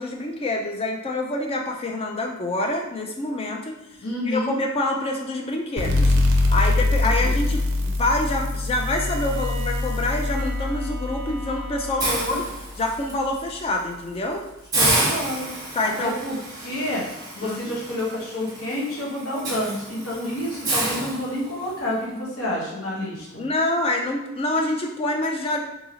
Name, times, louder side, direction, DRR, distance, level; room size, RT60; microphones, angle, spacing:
voice 1, 0.0-3.8 4.3-6.2 6.5-12.4 12.8-14.4 15.7-16.2 17.4-17.7 23.4-25.6, left 2 dB, 25° left, 1 dB, 0.3 m, -26 dB
voice 2, 4.0-4.6 7.0-7.3 12.0-12.4 14.7-15.5 15.8-17.0 17.3-23.5, left 1 dB, 75° left, -4 dB, 0.9 m, -29 dB
sound 1, 5.8-13.0, left 2 dB, 55° right, 0.4 m, -24 dB
Bowed string instrument, 8.7-12.5, right 1 dB, 50° left, 1.0 m, -39 dB
Hiss, 12.0-13.1 13.6-13.8 14.1-14.2 14.7-21.8, right 2 dB, 15° right, 0.8 m, -29 dB
2.7 x 2.7 x 2.7 m, 0.97 s
head